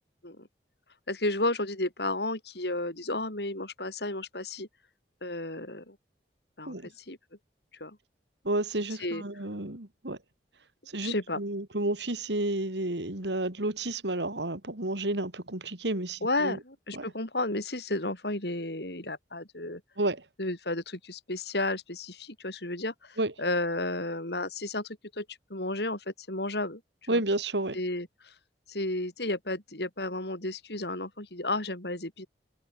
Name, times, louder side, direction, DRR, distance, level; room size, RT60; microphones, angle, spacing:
voice 1, 1.1-4.7 5.2-6.0 6.6-7.2 7.8-8.0 9.0-9.2 11.0-11.4 16.2-19.8 20.4-25.2 25.5-26.8 27.1-27.2 27.7-28.3 28.7-32.3, left 2 dB, 65° left, 6.2 m, -32 dB
voice 2, 8.4-10.2 10.9-16.6 16.9-17.0 20.0-20.2 23.2-23.3 27.1-27.8, right 2 dB, 80° right, 3.1 m, -31 dB
head